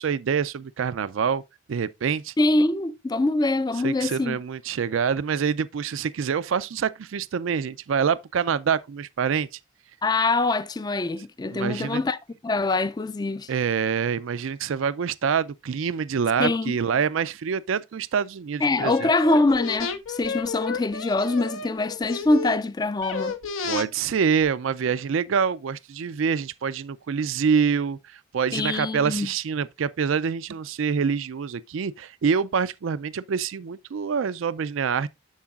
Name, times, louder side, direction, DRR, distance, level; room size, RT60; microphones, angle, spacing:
voice 1, 0.0-1.4 1.7-2.3 3.8-9.5 11.5-12.0 13.5-19.1 23.6-35.1, right 6 dB, 75° right, 0.4 m, -26 dB
voice 2, 2.4-4.4 10.0-12.2 12.4-13.5 16.4-16.7 18.6-23.4 28.5-29.3, left 2 dB, 20° left, 0.4 m, -24 dB
sound 1, 18.8-22.6 23.0-23.8 24.4-24.5, left 5 dB, 85° left, 1.0 m, -31 dB
13.0 x 4.7 x 2.4 m
head